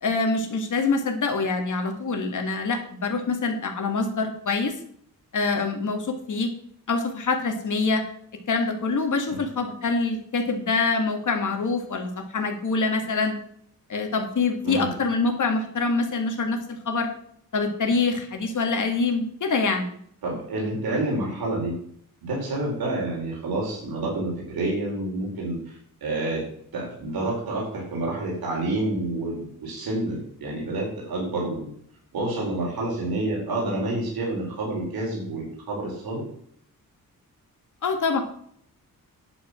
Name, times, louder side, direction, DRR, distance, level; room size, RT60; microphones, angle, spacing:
voice 1, 0.0-4.7 5.3-6.5 6.9-8.0 8.5-13.4 13.9-17.1 17.5-19.9 37.8-38.2, left 4 dB, 55° left, 5 dB, 2.2 m, -25 dB
voice 2, 20.2-21.7 22.2-25.8 26.0-26.4 26.7-31.7 32.1-36.2, right 2 dB, 85° right, -3 dB, 4.6 m, -28 dB
10.0 x 7.9 x 6.4 m, 0.66 s
wide cardioid pair, 120°, 36 cm